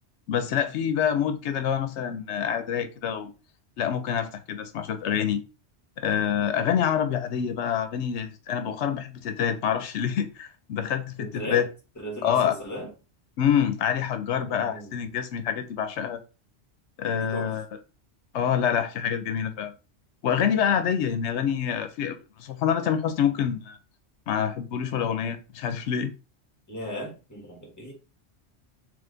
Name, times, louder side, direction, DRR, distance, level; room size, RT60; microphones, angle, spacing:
voice 1, 0.3-3.3 3.8-5.4 6.0-11.6 12.2-12.6 13.4-16.2 17.0-17.7 18.3-19.7 20.2-23.8 24.3-26.1, left 8 dB, 85° left, 0.9 m, -26 dB
voice 2, 11.2-11.6 12.0-12.9 14.4-14.9 17.2-17.5 26.7-27.9, equal, 15° left, 1.4 m, -37 dB
3.4 x 3.4 x 3.8 m
omnidirectional pair, 1.1 m